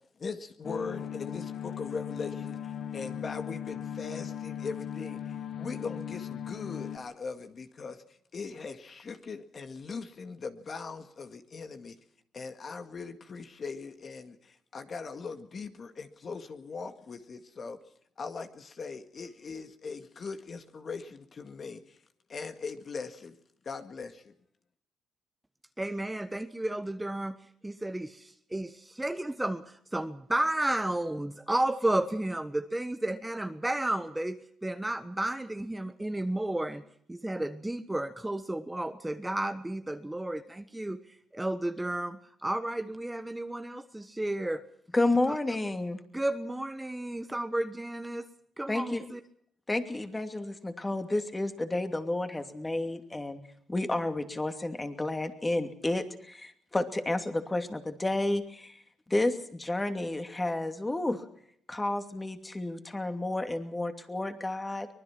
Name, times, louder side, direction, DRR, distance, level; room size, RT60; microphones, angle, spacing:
voice 1, 0.2-2.6 2.9-8.0 8.3-12.0 12.3-17.8 18.2-22.0 22.3-23.4 23.6-24.3, left 4 dB, 45° left, 7 dB, 2.0 m, -40 dB
sound 1, 0.6-7.0, left 9 dB, 60° left, 1.5 m, -38 dB
voice 2, 25.8-27.4 27.6-29.6 29.9-36.8 37.1-41.0 41.3-44.6 46.1-48.2 48.6-49.2, right 1 dB, 10° right, 9 dB, 1.2 m, -32 dB
voice 3, 44.9-46.0 48.7-49.0 49.7-53.4 53.7-58.8 59.1-61.2 61.7-64.9, left 2 dB, 15° left, 7 dB, 2.7 m, -31 dB
24.0 x 20.0 x 6.0 m, 0.67 s
cardioid pair, 90°, 0 cm